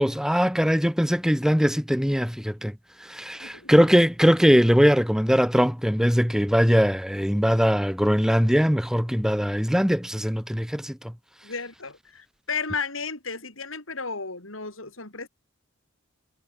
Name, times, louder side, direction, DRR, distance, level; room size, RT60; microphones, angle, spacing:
voice 1, 0.0-2.7 3.1-11.0, equal, 5° right, 2.7 m, -21 dB
voice 2, 3.4-3.7 11.4-15.3, left 5 dB, 80° left, 6.8 m, -33 dB
head